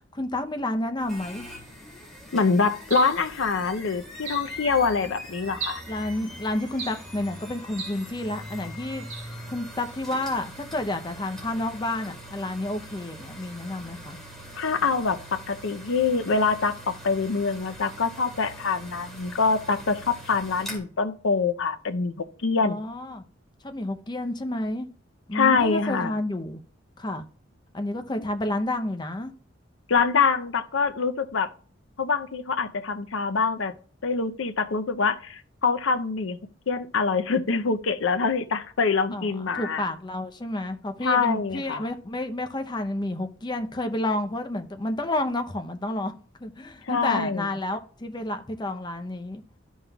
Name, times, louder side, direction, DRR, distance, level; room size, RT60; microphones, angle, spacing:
voice 1, 0.1-1.5 5.9-9.0 9.5-14.2 22.6-23.2 23.6-24.9 25.3-26.6 27.0-27.2 27.7-29.3 39.1-46.1 46.4-49.4, left 1 dB, 25° left, 0.7 m, -30 dB
sound 1, 1.0-20.8, equal, ahead, 2.5 m, -42 dB
voice 2, 2.3-5.8 14.5-22.8 25.3-26.1 29.9-31.5 32.0-33.7 34.0-36.4 36.7-39.8 41.0-41.9 46.8-47.5, left 4 dB, 80° left, 0.6 m, -25 dB
sound 2, 2.9-3.3 4.3-4.6 5.6-5.9 6.8-7.1 7.8-8.1 9.1-9.3, right 5 dB, 85° right, 1.4 m, -36 dB
13.0 x 5.5 x 2.3 m
head